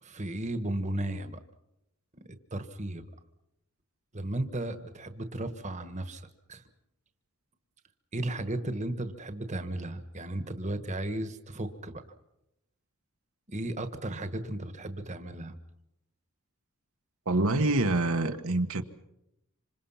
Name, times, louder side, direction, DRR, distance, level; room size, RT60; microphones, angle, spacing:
voice 1, 0.0-1.4 2.5-3.1 4.1-6.2 6.5-6.6 8.1-12.0 13.5-15.6, right 1 dB, 35° right, 9 dB, 1.5 m, -35 dB
voice 2, 17.2-18.8, right 2 dB, 70° right, 5 dB, 1.4 m, -26 dB
26.5 x 26.5 x 5.8 m, 0.86 s
head